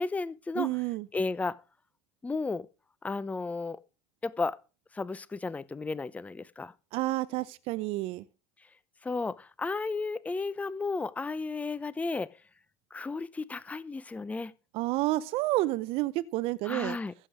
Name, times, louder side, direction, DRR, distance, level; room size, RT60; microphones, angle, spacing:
voice 1, 0.0-0.7 1.1-1.6 2.2-2.7 3.0-3.8 4.2-4.6 4.9-6.7 9.0-12.3 12.9-14.5 16.7-17.1, left 3 dB, 15° left, 0.7 m, -33 dB
voice 2, 0.6-1.1 6.9-8.2 14.7-17.0, right 18 dB, 55° right, 0.7 m, -30 dB
15.0 x 7.9 x 5.0 m
hypercardioid pair, 95°, 11 cm